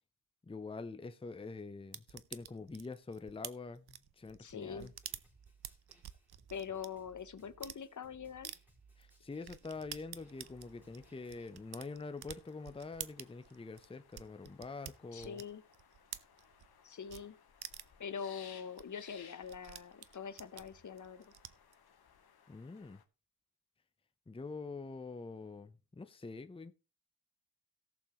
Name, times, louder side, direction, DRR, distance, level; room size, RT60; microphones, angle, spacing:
voice 1, 0.4-4.9 9.0-15.4 22.5-23.0 24.3-26.7, left 3 dB, 15° left, 0.6 m, -45 dB
sound 1, 1.9-6.9 7.4-7.8 8.4-8.6 9.0-9.1 9.4-16.8 17.1-17.2 17.6-18.0 18.4-18.5 18.8-18.9 19.1-21.7, right 10 dB, 85° right, 0.7 m, -49 dB
voice 2, 4.4-4.9 6.5-8.5 15.1-15.6 16.8-17.3 18.0-21.3, left 7 dB, 55° left, 0.8 m, -44 dB
Snare drum, 4.6-11.5, right 4 dB, 5° right, 4.2 m, -65 dB
sound 2, 10.2-23.0, left 7 dB, 90° left, 1.3 m, -62 dB
17.5 x 6.8 x 3.0 m
wide cardioid pair, 110°, 37 cm